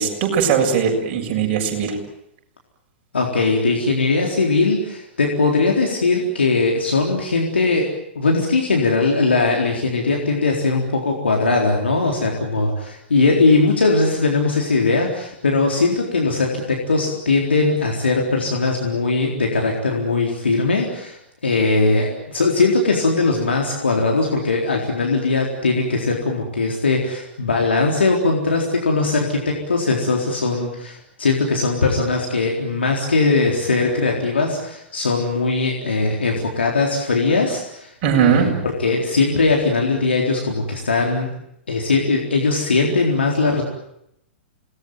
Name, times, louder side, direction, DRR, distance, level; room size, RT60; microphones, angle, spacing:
voice 1, 0.0-1.9 38.0-38.5, right 7 dB, 35° right, 1 dB, 7.1 m, -19 dB
voice 2, 3.1-21.2 21.4-41.3 41.7-43.6, left 3 dB, 70° left, 0 dB, 4.0 m, -20 dB
27.5 x 20.0 x 9.3 m, 0.79 s
figure-of-eight pair, 105°, 6 cm